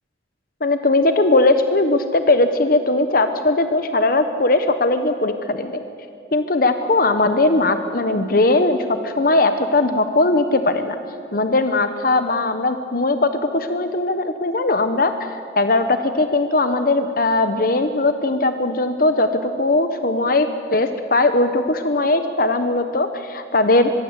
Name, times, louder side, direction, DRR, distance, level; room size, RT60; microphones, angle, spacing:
voice 1, 0.6-5.8 6.3-11.0 11.3-23.9, left 2 dB, 50° left, 8 dB, 1.1 m, -19 dB
24.5 x 22.0 x 8.2 m, 2.4 s
head